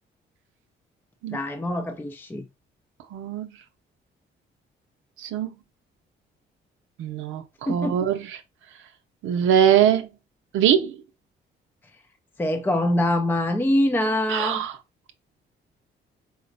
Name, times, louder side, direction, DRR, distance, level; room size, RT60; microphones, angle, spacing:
voice 1, 1.3-2.5 7.7-8.0 12.4-14.6, left 1 dB, 10° left, 0.5 m, -24 dB
voice 2, 3.1-3.5 5.2-5.5 7.0-8.4 9.2-10.1 10.5-11.0 14.3-14.8, right 9 dB, 85° right, 0.6 m, -22 dB
4.7 x 2.1 x 2.5 m
cardioid pair, 90°, 20 cm